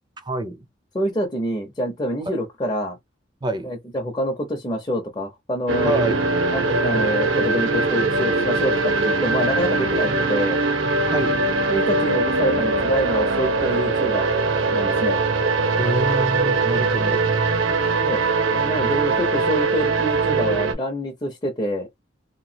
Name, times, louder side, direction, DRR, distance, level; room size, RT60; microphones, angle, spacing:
voice 1, 0.2-0.6 2.3-2.4 3.4-3.7 5.8-6.2 11.1-11.4 15.8-17.7, right 1 dB, 20° right, 0.5 m, -27 dB
voice 2, 0.9-3.0 3.6-5.9 6.5-10.6 11.7-14.3 14.7-15.2 18.0-18.2 18.5-21.9, equal, 20° left, 0.6 m, -26 dB
sound 1, 5.7-20.7, right 3 dB, 80° right, 0.8 m, -21 dB
2.9 x 2.3 x 2.7 m
head